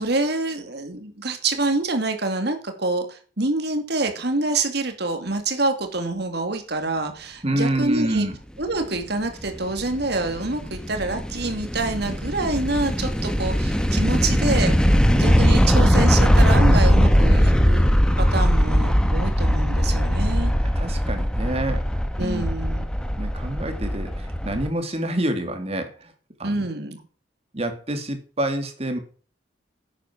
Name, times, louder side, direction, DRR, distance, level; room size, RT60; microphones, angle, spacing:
voice 1, 0.0-8.3 8.6-14.7 15.1-17.9 18.2-20.5 22.2-22.9 26.4-27.0, right 2 dB, 65° right, 6 dB, 2.6 m, -26 dB
voice 2, 7.4-8.4 20.8-21.9 22.2-22.5 23.1-26.1 26.4-26.7 27.5-29.0, right 1 dB, 35° right, 7 dB, 2.4 m, -27 dB
sound 1, 9.2-24.7, equal, 5° left, 1.3 m, -20 dB
10.5 x 9.0 x 6.1 m, 0.41 s
head